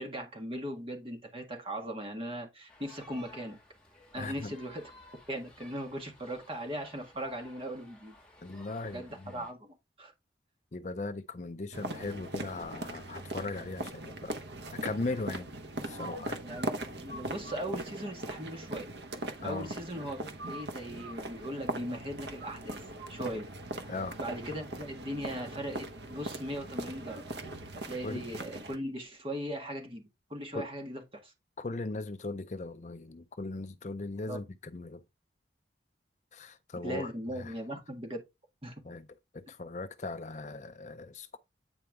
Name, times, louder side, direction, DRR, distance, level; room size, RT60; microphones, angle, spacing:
voice 1, 0.0-3.6 4.1-4.9 5.3-8.1 8.8-9.7 10.0-10.1 16.4-18.9 19.4-22.8 23.1-23.5 24.2-27.3 27.7-30.0 30.3-31.3 34.3-34.4 36.8-38.2 38.6-38.7, equal, 30° right, 1.7 m, -39 dB
sound 1, 2.7-9.5, left 2 dB, 5° left, 1.6 m, -56 dB
voice 2, 4.2-4.5 8.4-9.5 10.7-14.4 14.7-15.5 15.8-16.4 19.4-19.7 23.9-24.2 28.0-28.2 30.5-30.7 31.6-35.0 36.3-37.5 38.8-39.1 39.3-41.4, left 3 dB, 40° left, 0.5 m, -38 dB
sound 2, 11.7-28.8, right 1 dB, 65° right, 1.0 m, -40 dB
9.0 x 4.7 x 3.5 m
head